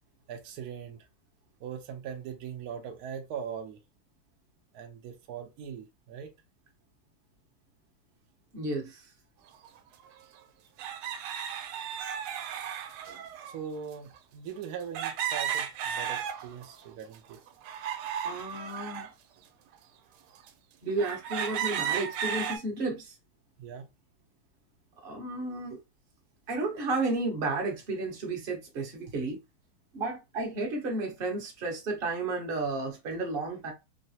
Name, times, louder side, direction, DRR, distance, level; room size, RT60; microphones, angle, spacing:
voice 1, 0.3-1.1 1.6-3.8 4.7-6.3 13.5-17.4 23.6-23.9, right 7 dB, 70° right, 0.9 m, -40 dB
voice 2, 8.5-9.0 18.2-19.1 20.8-23.1 25.0-25.8 26.5-29.4 29.9-33.7, right 3 dB, 35° right, 0.9 m, -32 dB
sound 1, 9.6-9.7 10.8-13.6 14.9-16.7 17.1-19.1 19.7-19.8 20.5-20.6 21.0-22.6, right 8 dB, 90° right, 1.4 m, -34 dB
3.9 x 2.0 x 2.8 m
omnidirectional pair, 2.3 m